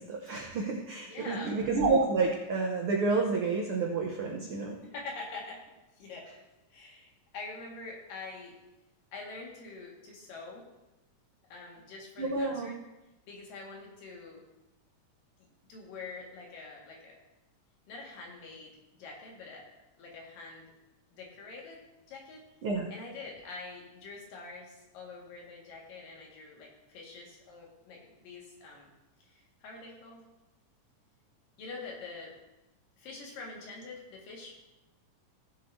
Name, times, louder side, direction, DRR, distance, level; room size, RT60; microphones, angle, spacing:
voice 1, 0.0-4.8 12.2-12.7 22.6-22.9, right 3 dB, 80° right, 0 dB, 1.2 m, -29 dB
voice 2, 1.0-1.6 4.8-5.6 6.0-6.3 6.7-8.6 9.1-10.7 11.5-12.8 13.3-14.4 15.7-17.2 17.9-19.7 20.0-20.7 21.1-21.8 22.1-22.4 22.9-28.9 29.2-30.2 31.6-32.3 33.0-34.5, left 3 dB, 85° left, -2 dB, 3.6 m, -45 dB
17.0 x 7.8 x 2.7 m, 0.99 s
omnidirectional pair, 3.8 m